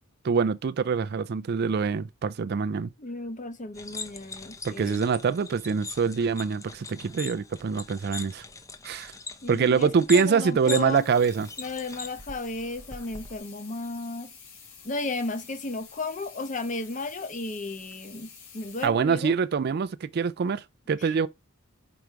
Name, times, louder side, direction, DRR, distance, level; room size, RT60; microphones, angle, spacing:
voice 1, 0.2-2.9 4.6-8.4 8.8-9.1 9.5-11.5 18.8-21.3, right 5 dB, 50° right, 0.4 m, -25 dB
voice 2, 3.0-5.0 9.4-11.1 11.6-14.3 14.8-18.3 18.5-19.3 21.0-21.1, left 2 dB, 40° left, 0.9 m, -34 dB
sound 1, 3.7-13.4, left 4 dB, 15° left, 0.7 m, -41 dB
sound 2, 10.9-18.9, left 6 dB, 85° left, 2.5 m, -49 dB
5.1 x 4.7 x 4.5 m
head